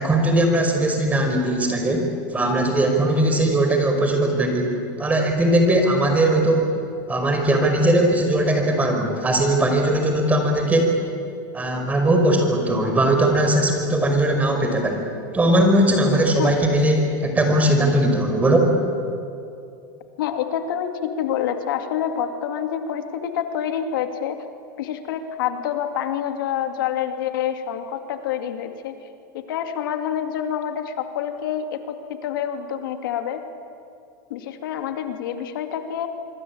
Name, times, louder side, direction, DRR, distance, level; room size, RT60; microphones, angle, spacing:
voice 1, 0.0-2.0 2.3-6.7 7.1-10.9 11.5-15.0 15.3-18.7, right 1 dB, 15° right, 3 dB, 5.3 m, -19 dB
voice 2, 20.2-24.4 24.8-29.0 29.3-33.4 34.3-36.1, left 9 dB, 75° left, 6 dB, 2.5 m, -27 dB
25.5 x 24.5 x 8.7 m, 2.6 s
supercardioid pair, 135°, 11 cm